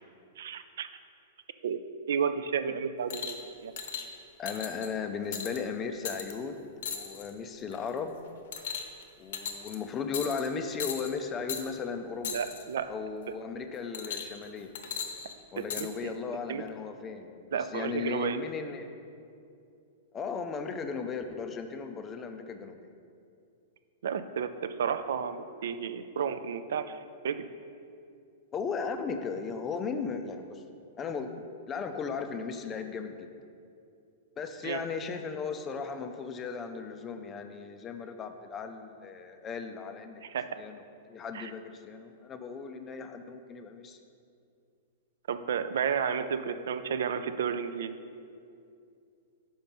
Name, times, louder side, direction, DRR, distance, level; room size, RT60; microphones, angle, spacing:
voice 1, 0.4-0.9 1.6-1.8 2.1-3.4 3.6-3.7 12.3-12.9 15.6-16.1 16.5-16.6 17.5-18.4 24.0-27.0 27.2-27.5 34.6-34.8 40.3-40.6 41.3-41.5 45.3-47.9, right 7 dB, 75° right, 11 dB, 0.4 m, -32 dB
sound 1, 3.1-3.4 3.8-4.1 4.5-4.9 5.3-5.6 6.1-6.3 6.8-7.3 7.7-8.0 8.5-9.0 9.3-9.8 10.1-10.5 10.8-11.1 11.5-11.6 12.2-12.6 13.9-14.4 14.8-15.9 16.7-16.8, left 7 dB, 65° left, 0.7 m, -37 dB
voice 2, 4.4-8.2 9.2-12.4 12.9-14.7 15.5-18.9 20.1-22.8 28.5-30.6 31.0-33.3 34.4-40.2 40.6-44.0, left 5 dB, 20° left, 7 dB, 0.4 m, -36 dB
5.6 x 5.1 x 5.3 m, 2.5 s
supercardioid pair, 160°, 0 cm